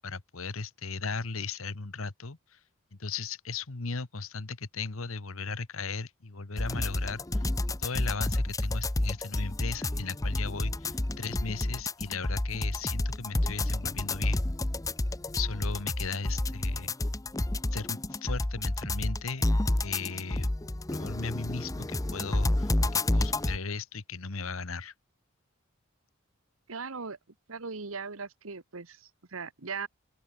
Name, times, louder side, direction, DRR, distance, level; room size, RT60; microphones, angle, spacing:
voice 1, 0.0-2.6 2.9-7.5 7.8-14.4 15.3-16.9 17.7-19.4 19.8-20.5 20.9-24.9, left 4 dB, 90° left, 1.4 m, -37 dB
sound 1, 6.6-23.6, left 1 dB, 15° left, 0.7 m, -30 dB
voice 2, 26.7-27.2 27.5-29.9, right 5 dB, 85° right, 1.4 m, -39 dB
open air
head